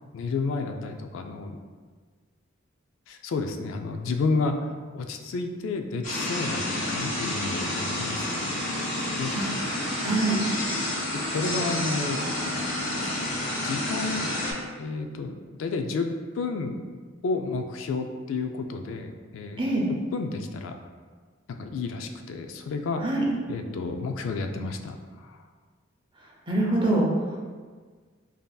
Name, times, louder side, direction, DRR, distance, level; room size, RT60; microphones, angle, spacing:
voice 1, 0.1-1.6 3.1-8.4 9.2-9.6 11.1-12.2 13.6-14.3 14.8-16.1 16.3-16.8 17.2-19.6 19.9-20.7 21.5-23.0 23.5-25.4, left 3 dB, 70° left, 5 dB, 0.3 m, -31 dB
sound 1, 6.0-14.5, left 1 dB, 40° left, 1.3 m, -29 dB
voice 2, 10.0-10.4 19.6-19.8 23.0-23.2 26.5-27.0, right 2 dB, 25° right, -3 dB, 0.7 m, -24 dB
5.2 x 2.7 x 2.3 m, 1.5 s
head